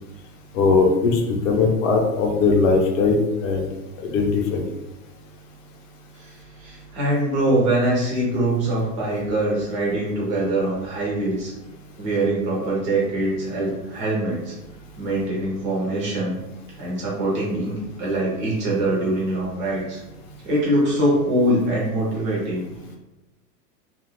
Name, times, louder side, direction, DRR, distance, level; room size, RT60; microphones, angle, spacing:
voice 1, 0.5-3.7 4.1-4.6, left 4 dB, 55° left, 1 dB, 0.7 m, -19 dB
voice 2, 6.1-11.5 12.0-14.6 15.0-16.4 16.8-20.0 20.4-22.6, right 1 dB, 20° right, -5 dB, 0.4 m, -23 dB
2.4 x 2.3 x 3.4 m, 0.99 s
supercardioid pair, 165°, 46 cm